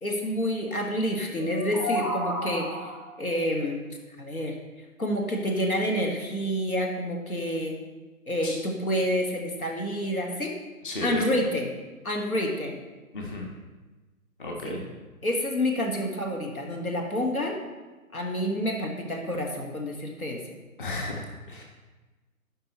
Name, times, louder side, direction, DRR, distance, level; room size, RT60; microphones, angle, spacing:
voice 1, 0.0-2.9 3.2-4.6 5.0-7.8 8.3-10.6 11.0-11.7 12.0-12.8 14.6-14.8 15.2-17.6 18.1-20.4, equal, 75° left, 2 dB, 1.5 m, -28 dB
sound 1, 1.4-3.2, equal, 10° left, 1.3 m, -31 dB
voice 2, 10.8-11.2 13.1-13.5 14.4-14.8 20.8-21.6, left 2 dB, 35° left, 0 dB, 1.2 m, -33 dB
12.5 x 5.5 x 2.9 m, 1.2 s
figure-of-eight pair, 140°, 43 cm